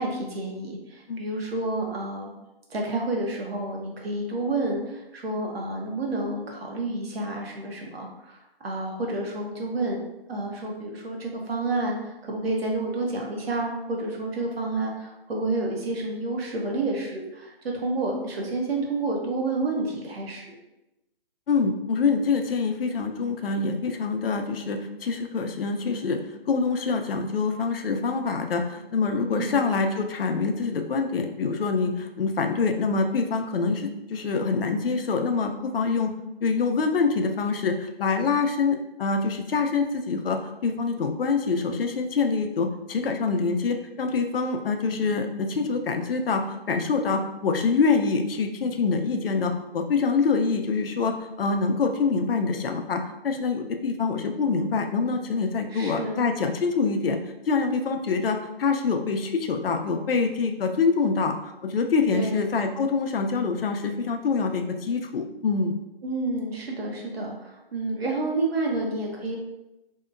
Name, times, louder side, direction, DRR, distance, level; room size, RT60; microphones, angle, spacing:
voice 1, 0.0-2.3 2.7-10.0 10.3-20.5 29.3-29.6 55.7-56.2 62.1-62.4 66.0-69.4, right 2 dB, 80° right, 0 dB, 0.9 m, -29 dB
voice 2, 21.5-26.2 26.5-36.1 36.4-57.2 57.5-61.3 61.6-65.7, left 4 dB, 70° left, 5 dB, 0.5 m, -25 dB
2.7 x 2.2 x 2.4 m, 0.93 s
hypercardioid pair, 170°, 30 cm